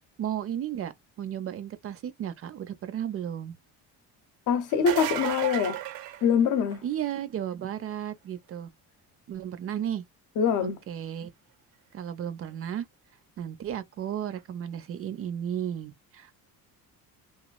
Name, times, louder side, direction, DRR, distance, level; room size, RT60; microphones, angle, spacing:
voice 1, 0.2-0.9 1.2-3.6 6.8-8.7 9.3-10.0 10.6-11.3 11.9-12.9 13.4-16.4, right 10 dB, 40° right, 0.5 m, -34 dB
voice 2, 4.5-5.8 6.2-6.8 10.4-10.8, left 7 dB, 60° left, 0.7 m, -24 dB
sound 1, 4.7-6.9 12.4-12.5 14.4-14.5, right 13 dB, 80° right, 0.7 m, -33 dB
3.0 x 2.3 x 2.3 m
cardioid pair, 150°, 35 cm